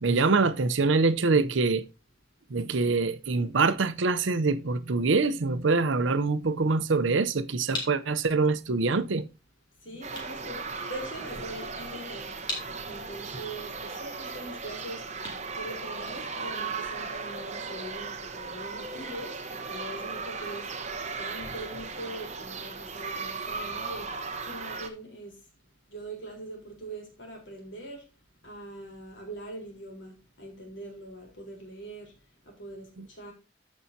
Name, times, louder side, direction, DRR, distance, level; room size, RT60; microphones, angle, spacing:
voice 1, 0.0-1.8 2.5-9.3, right 3 dB, 80° right, 0.7 m, -24 dB
sound 1, 7.7-16.5, left 2 dB, 25° left, 2.8 m, -43 dB
voice 2, 9.8-12.3 12.9-15.0 15.6-20.7 21.2-24.1 24.5-25.3 25.9-28.0 28.4-32.1 32.5-32.9 33.2-33.3, right 1 dB, 75° left, 3.9 m, -42 dB
sound 2, 10.0-24.9, right 4 dB, 35° right, 1.0 m, -37 dB
14.0 x 5.6 x 2.8 m
head